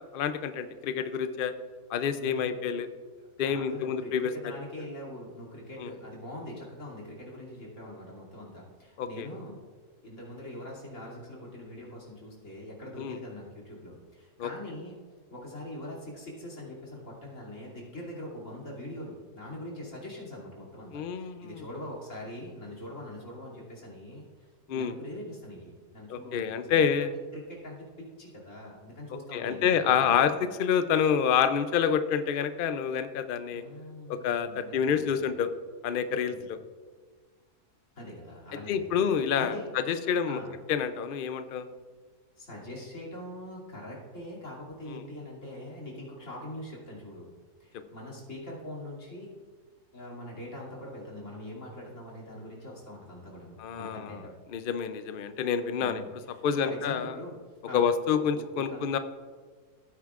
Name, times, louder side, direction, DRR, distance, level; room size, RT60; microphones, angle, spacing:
voice 1, 0.0-1.5 1.9-2.9 3.4-4.3 5.8-5.9 9.0-9.3 13.0-13.2 14.4-14.5 20.9-21.6 24.7-24.9 26.1-27.1 29.3-33.6 34.1-35.5 35.8-36.6 38.7-40.4 40.7-41.7 44.9-45.0 53.6-54.1 54.5-56.0 56.4-57.1 57.7-59.0, left 7 dB, 80° left, 10 dB, 0.4 m, -28 dB
voice 2, 2.2-2.5 3.2-9.6 10.0-14.9 15.3-30.2 33.5-35.3 36.3-36.5 38.0-39.0 39.4-39.9 40.3-40.5 42.4-47.3 47.6-49.3 49.9-54.3 55.8-57.4 57.6-57.8 58.1-58.8, left 1 dB, 50° left, -3 dB, 3.1 m, -43 dB
16.5 x 9.3 x 2.5 m, 1.5 s
omnidirectional pair, 1.6 m